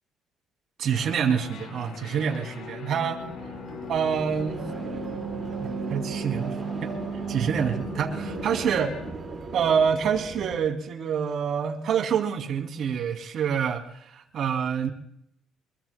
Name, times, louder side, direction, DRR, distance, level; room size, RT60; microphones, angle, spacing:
voice 1, 0.8-3.3 3.9-4.6 5.6-6.9 7.3-9.0 9.5-14.9, right 7 dB, 55° right, 3 dB, 2.6 m, -27 dB
sound 1, 0.9-9.1, left 6 dB, 85° left, 4.0 m, -40 dB
sound 2, 3.2-10.6, right 5 dB, 25° right, 3.9 m, -35 dB
25.5 x 21.5 x 2.2 m, 0.72 s
cardioid pair, 155°, 0 cm